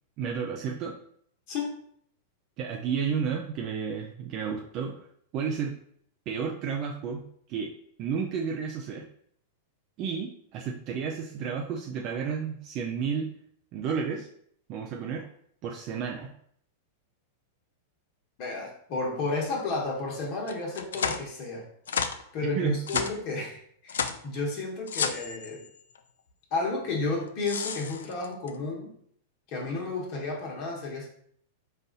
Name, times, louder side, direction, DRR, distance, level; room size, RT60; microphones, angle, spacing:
voice 1, 0.2-1.0 2.6-5.1 5.3-5.8 6.3-7.2 7.5-9.1 10.0-13.3 13.7-14.3 14.7-15.3 15.6-16.3 22.6-23.0, right 6 dB, 45° right, 1 dB, 0.4 m, -32 dB
voice 2, 18.4-21.6 22.3-25.6 26.5-28.9 29.5-31.1, left 3 dB, 50° left, -2 dB, 1.2 m, -32 dB
sound 1, 20.5-21.3 21.9-22.3 22.9-23.2 23.9-24.3 24.9-26.0 27.2-28.5, left 6 dB, 80° left, 0.3 m, -31 dB
4.0 x 2.5 x 3.9 m, 0.64 s
hypercardioid pair, 110°, 0 cm